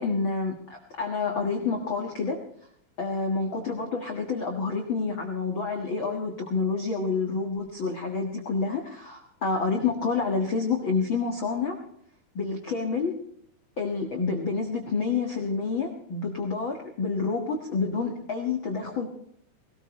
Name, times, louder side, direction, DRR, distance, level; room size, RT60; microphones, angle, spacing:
voice 1, 0.0-2.4 3.0-11.7 12.3-13.1 13.8-19.1, left 4 dB, 75° left, 1 dB, 1.1 m, -28 dB
19.0 x 18.0 x 3.2 m, 0.67 s
omnidirectional pair, 5.1 m